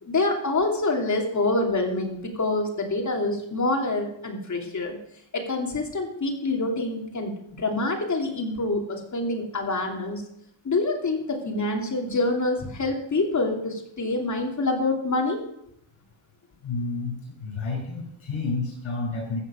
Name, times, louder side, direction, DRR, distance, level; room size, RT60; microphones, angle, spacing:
voice 1, 0.0-5.0 5.3-10.2 10.6-15.4, left 2 dB, 35° left, 1 dB, 2.9 m, -26 dB
voice 2, 16.6-19.4, left 3 dB, 85° left, -1 dB, 6.5 m, -30 dB
14.5 x 7.3 x 5.9 m, 0.73 s
wide cardioid pair, 135°, 47 cm